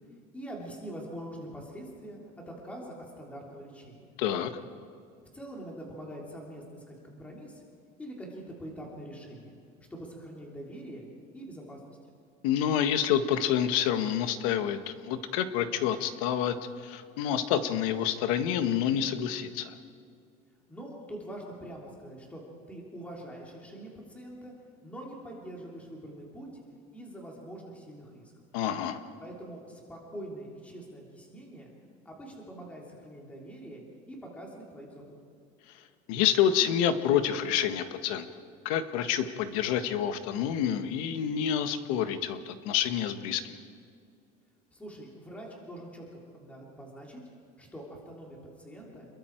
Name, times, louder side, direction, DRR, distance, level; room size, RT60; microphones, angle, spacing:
voice 1, 0.3-2.2 2.5-4.1 5.3-7.6 8.0-9.5 9.9-11.1 11.3-12.0 20.7-22.4 22.7-24.5 24.8-26.5 26.9-28.3 29.2-31.7 32.0-35.1 44.7-46.0 46.3-47.2 47.6-49.1, right 1 dB, 10° left, -2 dB, 3.1 m, -44 dB
voice 2, 4.2-4.5 12.4-16.6 16.8-19.7 28.5-29.0 36.1-38.2 38.6-43.6, left 9 dB, 80° left, 9 dB, 1.6 m, -28 dB
29.0 x 22.0 x 4.6 m, 2.3 s
cardioid pair, 175°, 17 cm